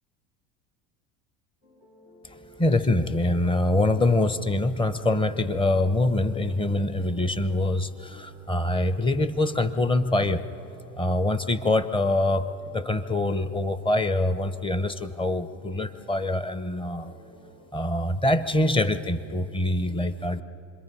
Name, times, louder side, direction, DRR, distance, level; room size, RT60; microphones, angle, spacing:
sound 1, 1.6-17.7, left 1 dB, 70° left, 5.2 m, -54 dB
voice 1, 2.6-10.4 11.0-12.5 12.7-17.1 17.7-20.4, left 2 dB, 15° left, 12 dB, 0.8 m, -24 dB
26.5 x 22.0 x 5.5 m, 2.9 s
supercardioid pair, 100°, 37 cm